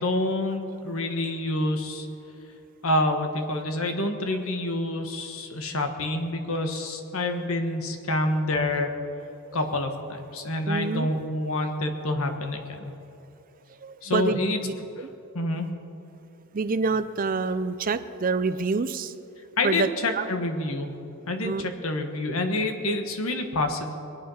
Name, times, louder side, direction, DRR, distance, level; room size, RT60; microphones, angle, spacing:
voice 1, 0.0-2.1 2.8-8.9 9.5-12.9 14.0-14.6 15.3-15.7 19.6-20.9 21.3-24.0, left 1 dB, 70° left, 5 dB, 1.4 m, -27 dB
voice 2, 10.7-11.1 13.8-15.1 16.5-19.1 19.6-20.3 21.4-21.7, right 4 dB, 40° right, 12 dB, 0.5 m, -27 dB
22.5 x 8.7 x 5.6 m, 2.8 s
head